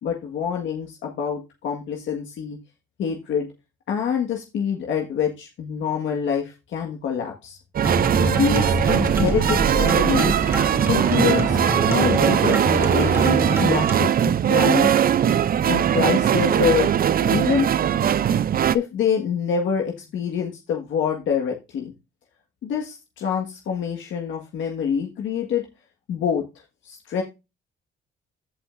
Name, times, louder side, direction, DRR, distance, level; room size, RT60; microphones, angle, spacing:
voice 1, 0.0-2.6 3.0-3.5 3.9-7.6 8.3-10.4 10.9-15.0 15.7-16.9 17.2-17.7 18.7-21.9 22.6-25.7 26.1-26.4 26.8-27.2, left 7 dB, 75° left, 1 dB, 1.7 m, -26 dB
sound 1, 7.8-14.1, right 2 dB, 10° right, 2.5 m, -26 dB
sound 2, 7.8-18.8, right 9 dB, 50° right, 0.6 m, -20 dB
15.0 x 5.5 x 2.6 m, 0.25 s
cardioid pair, 90°, 20 cm